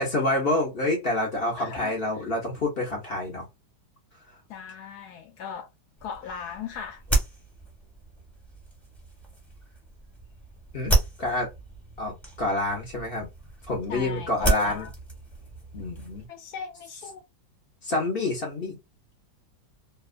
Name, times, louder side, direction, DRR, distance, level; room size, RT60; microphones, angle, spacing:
voice 1, 0.0-3.5 10.7-11.5 12.0-13.3 13.7-14.9 15.7-16.3 17.8-18.8, left 2 dB, 50° left, 0.7 m, -27 dB
voice 2, 1.6-1.9 4.5-5.7 6.0-7.0 13.9-14.9 16.3-17.2, left 7 dB, 70° left, 1.0 m, -38 dB
sound 1, 6.0-16.3, right 2 dB, ahead, 0.9 m, -32 dB
2.9 x 2.3 x 2.4 m
omnidirectional pair, 1.9 m